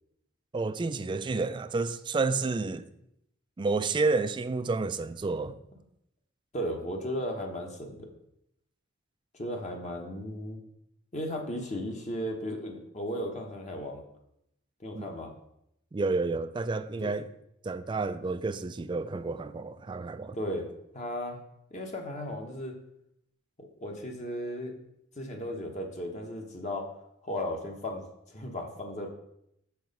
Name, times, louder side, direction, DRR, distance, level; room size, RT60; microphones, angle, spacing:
voice 1, 0.5-2.9 3.6-5.6 14.9-15.1 15.9-17.3 17.6-20.4, right 3 dB, 25° right, 0.3 m, -30 dB
voice 2, 6.5-8.1 9.3-10.6 11.1-14.0 14.8-15.3 17.0-17.1 20.3-20.7 20.9-21.4 21.7-22.7 23.6-24.7 25.2-26.9 27.2-29.1, equal, 35° left, 1.0 m, -35 dB
6.5 x 4.6 x 5.2 m
head